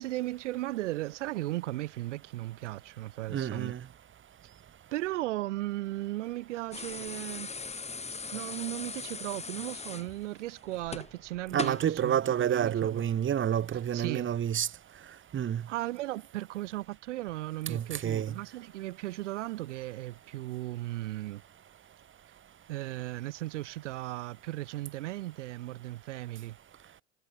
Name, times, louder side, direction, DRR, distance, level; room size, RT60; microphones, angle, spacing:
voice 1, 0.0-3.7 4.9-7.7 8.3-13.0 13.9-14.3 15.7-21.4 22.7-26.6, right 17 dB, 65° right, 6.2 m, -36 dB
voice 2, 3.3-3.8 11.5-14.7 15.3-15.6 17.7-18.3, right 9 dB, 30° right, 4.0 m, -29 dB
sound 1, 6.7-11.9 13.2-13.4, left 4 dB, 15° left, 4.8 m, -40 dB
hypercardioid pair, 85°, 38 cm